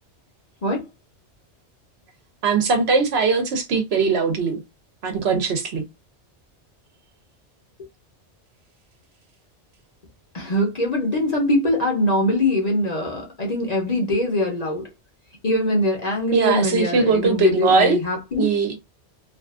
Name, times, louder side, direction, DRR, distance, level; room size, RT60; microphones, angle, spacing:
voice 1, 2.4-4.6 5.0-5.8 16.3-18.0 18.4-18.8, right 5 dB, 65° right, 0.9 m, -20 dB
voice 2, 10.3-14.9 15.4-18.6, left 1 dB, 40° left, 0.7 m, -22 dB
2.5 x 2.4 x 2.3 m
omnidirectional pair, 1.2 m